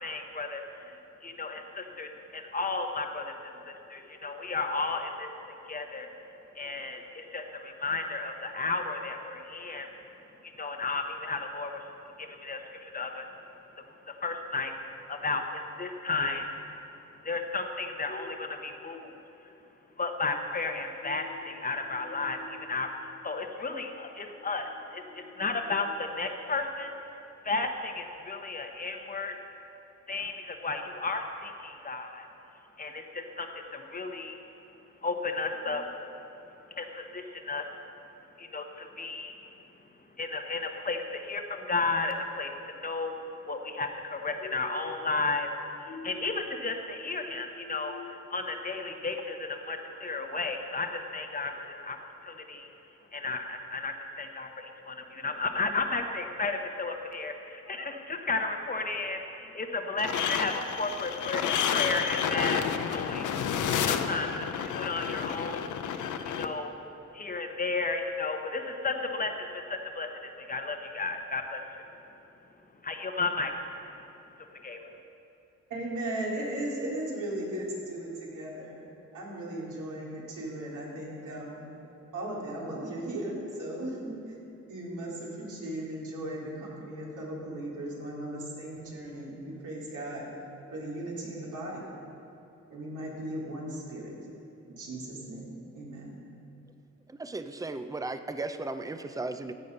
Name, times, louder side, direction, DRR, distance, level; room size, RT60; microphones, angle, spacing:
voice 1, 0.0-5.3 5.6-6.1 6.5-9.9 10.6-11.8 12.2-13.3 14.1-16.4 17.2-19.2 20.0-26.9 27.4-29.3 30.1-32.2 32.8-34.4 35.0-35.9 36.8-37.7 38.4-39.4 40.2-45.5 45.8-52.0 52.2-52.7 53.1-62.6 62.9-63.3 63.9-65.8 66.2-66.7 67.1-71.6 72.8-73.5 74.6-74.9, left 3 dB, 30° left, 4 dB, 0.9 m, -33 dB
sound 1, 60.0-66.4, left 8 dB, 85° left, 0.7 m, -30 dB
voice 2, 75.7-78.8 79.1-81.7 82.1-84.3 84.7-90.3 90.7-91.9 92.7-94.1 94.7-96.1, right 1 dB, 85° right, -4 dB, 3.2 m, -37 dB
voice 3, 97.1-99.5, right 2 dB, 10° right, 9 dB, 0.5 m, -36 dB
15.5 x 8.4 x 5.3 m, 2.9 s
cardioid pair, 120°, 30 cm